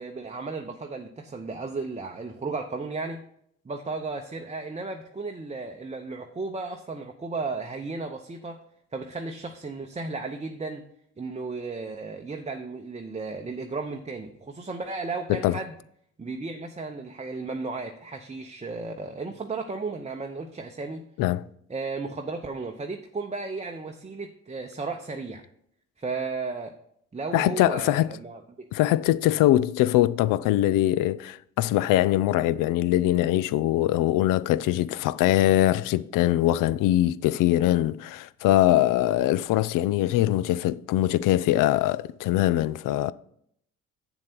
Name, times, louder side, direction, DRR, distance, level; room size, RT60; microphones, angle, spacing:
voice 1, 0.0-3.2 3.6-8.6 8.9-10.9 11.2-15.7 16.2-21.1 21.7-25.4 26.0-26.7 27.1-28.7, right 3 dB, 15° right, 0.8 m, -34 dB
voice 2, 27.3-28.1 28.7-43.1, left 14 dB, 55° left, 0.5 m, -22 dB
8.0 x 7.3 x 4.5 m
hypercardioid pair, 45°, 40 cm